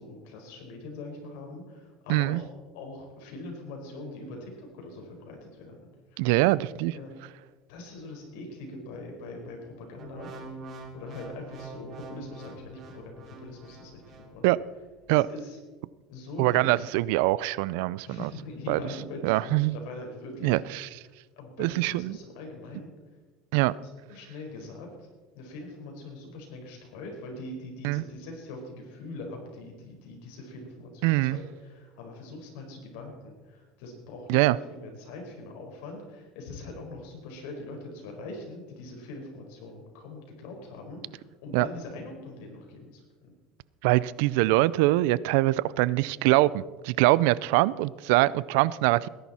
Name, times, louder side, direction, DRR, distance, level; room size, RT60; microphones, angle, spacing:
voice 1, 0.0-2.4 2.7-6.3 6.9-7.1 7.7-10.3 10.9-14.4 15.1-15.6 16.1-16.8 18.0-20.6 21.4-22.9 24.1-25.1 25.3-43.3, left 2 dB, 75° left, 2 dB, 4.6 m, -42 dB
voice 2, 2.1-2.4 6.2-6.9 14.4-14.6 15.1-15.3 16.4-18.3 18.7-18.8 19.2-19.8 20.4-20.9 21.6-22.2 23.5-23.7 27.8-28.0 31.0-31.4 34.3-34.6 41.5-41.7 43.8-49.1, right 18 dB, 75° right, 20 dB, 0.4 m, -23 dB
sound 1, 10.0-14.3 14.9-15.1, right 2 dB, 40° right, 2.6 m, -44 dB
19.5 x 10.5 x 4.3 m, 1.3 s
supercardioid pair, 120°, 0 cm